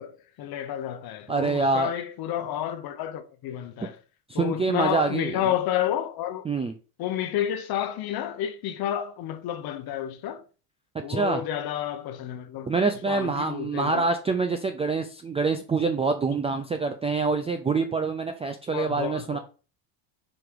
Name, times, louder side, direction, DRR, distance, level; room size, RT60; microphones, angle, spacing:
voice 1, 0.0-4.0 4.3-6.4 7.0-10.4 11.0-12.7 13.1-14.1 18.7-19.4, left 11 dB, 50° left, 0.9 m, -30 dB
voice 2, 1.3-1.9 4.3-5.4 6.4-6.7 11.1-11.4 12.7-19.4, right 4 dB, 15° right, 0.4 m, -26 dB
5.1 x 4.7 x 6.0 m
supercardioid pair, 125°, 49 cm